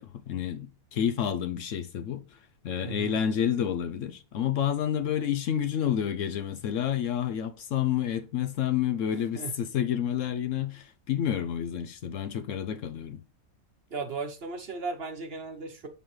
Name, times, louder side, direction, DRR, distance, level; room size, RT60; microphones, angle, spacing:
voice 1, 0.0-2.2 2.6-13.2, left 9 dB, 65° left, 0.9 m, -29 dB
voice 2, 2.8-3.2 9.1-9.5 13.9-15.9, right 4 dB, 50° right, 1.0 m, -36 dB
6.7 x 5.6 x 3.2 m
omnidirectional pair, 1.5 m